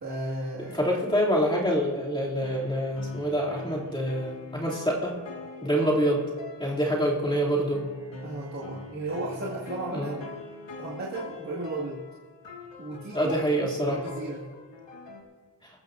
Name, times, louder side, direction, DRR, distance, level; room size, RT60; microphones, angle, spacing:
voice 1, 0.0-0.8 8.2-10.3 10.8-12.0 12.8-13.4 13.9-14.5, right 2 dB, 40° right, -7 dB, 2.1 m, -34 dB
sound 1, 0.6-1.7 2.4-7.1 7.7-15.2, left 3 dB, 85° left, 2.1 m, -43 dB
voice 2, 0.6-5.1 5.6-6.2 6.6-7.8 9.9-10.2 13.1-14.0, equal, 10° left, -5 dB, 2.8 m, -26 dB
21.5 x 14.0 x 2.6 m, 1.3 s
wide cardioid pair, 165°, 42 cm